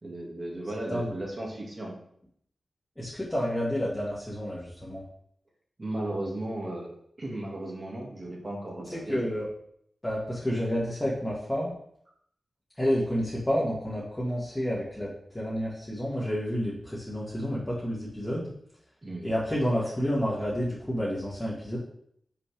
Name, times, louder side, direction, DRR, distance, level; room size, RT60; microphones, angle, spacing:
voice 1, 0.0-2.0 5.8-6.9 7.2-9.2 19.0-19.3, right 1 dB, 35° right, -1 dB, 1.9 m, -35 dB
voice 2, 3.0-5.0 8.9-9.5 10.0-11.8 12.8-15.1 15.3-18.5 19.2-21.8, equal, 10° left, -8 dB, 1.7 m, -29 dB
7.0 x 5.8 x 3.4 m, 0.69 s
wide cardioid pair, 120°, 0 cm